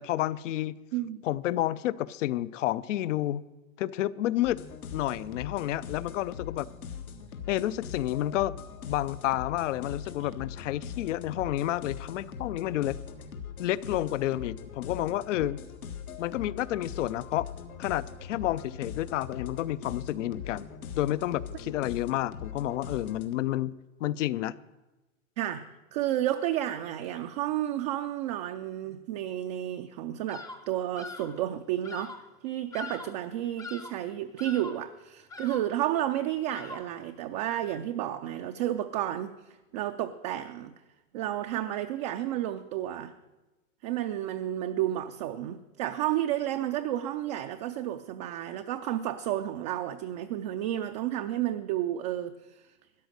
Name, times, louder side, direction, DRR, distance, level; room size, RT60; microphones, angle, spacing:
voice 1, 0.0-0.8 1.2-3.4 3.8-4.6 4.9-6.7 7.5-8.6 8.9-13.0 13.6-15.6 16.2-17.5 17.8-20.7 20.9-23.7 24.0-24.6, left 14 dB, 60° left, 18 dB, 0.6 m, -30 dB
voice 2, 0.9-1.2 25.4-32.2 32.4-39.4 39.7-40.7 41.1-43.1 43.8-52.6, right 12 dB, 30° right, 7 dB, 0.4 m, -31 dB
sound 1, 4.4-23.3, left 7 dB, 90° left, 1.8 m, -41 dB
Bird vocalization bird call bird song, 30.3-30.7 30.9-31.4 31.8-32.3 32.7-33.2 33.6-34.0 34.4-34.9 35.3-35.8 36.5-37.0, left 3 dB, 10° left, 0.6 m, -42 dB
13.0 x 9.9 x 6.4 m, 1.1 s
hypercardioid pair, 140°, 42 cm